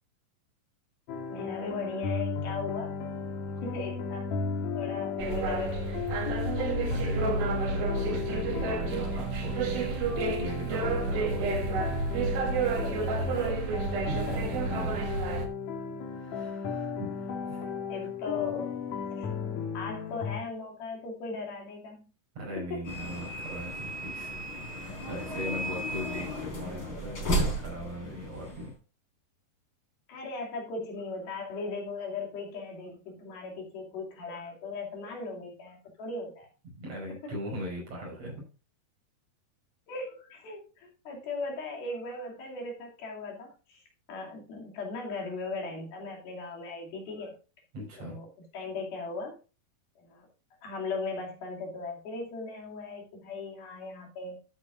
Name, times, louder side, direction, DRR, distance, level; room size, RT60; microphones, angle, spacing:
sound 1, 1.1-20.4, left 4 dB, 60° left, 2.2 m, -35 dB
voice 1, 1.3-2.9 3.6-4.2 4.7-6.0 6.7-6.8 12.8-13.7 14.3-14.4 17.9-18.8 19.1-19.3 19.7-22.0 22.7-22.8 25.4-25.5 30.1-36.5 37.1-37.3 39.9-43.8 44.1-47.3 48.0-48.3 48.5-49.4 50.0-50.3 50.6-54.4, left 3 dB, 75° left, -1 dB, 4.6 m, -38 dB
sound 2, 5.2-15.5, right 3 dB, 75° right, 3.6 m, -30 dB
voice 2, 6.9-11.7 14.1-14.2 14.6-15.0 16.1-17.7 22.3-24.3 24.7-28.7 36.8-38.4 47.7-48.2, equal, 45° right, -2 dB, 6.6 m, -39 dB
sound 3, 22.8-28.7, right 1 dB, 30° left, 4.3 m, -34 dB
13.0 x 8.8 x 2.6 m, 0.34 s
omnidirectional pair, 4.3 m